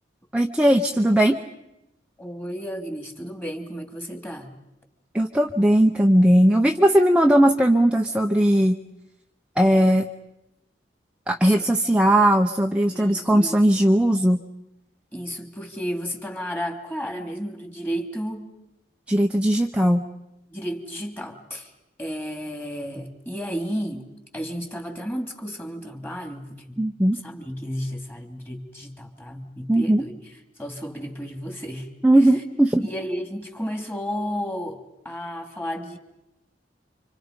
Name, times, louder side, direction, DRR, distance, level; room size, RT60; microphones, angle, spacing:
voice 1, 0.3-1.4 5.1-8.8 9.6-10.1 11.3-14.4 19.1-20.1 26.8-27.2 29.7-30.0 32.0-32.9, right 1 dB, 5° right, 3 dB, 0.8 m, -18 dB
voice 2, 2.2-4.5 11.4-11.7 12.9-13.6 15.1-18.5 20.5-21.7 22.0-24.0 24.3-26.8 27.2-30.2 30.6-31.9 32.8-34.8 35.0-36.0, equal, 10° left, 5 dB, 2.7 m, -32 dB
29.5 x 26.0 x 5.2 m, 0.89 s
head